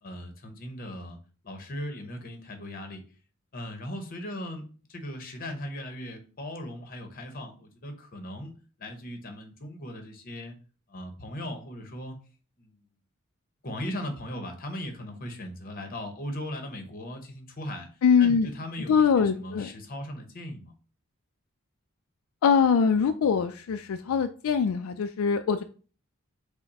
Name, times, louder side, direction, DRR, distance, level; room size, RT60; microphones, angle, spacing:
voice 1, 0.0-1.2 1.4-3.0 3.5-8.5 8.8-10.6 10.9-12.2 12.6-12.8 13.6-17.9 18.2-20.7, left 1 dB, 40° left, 5 dB, 0.9 m, -38 dB
voice 2, 18.0-18.5 18.9-19.7 22.4-25.6, left 6 dB, 75° left, 7 dB, 0.3 m, -23 dB
5.7 x 2.1 x 4.1 m, 0.38 s
head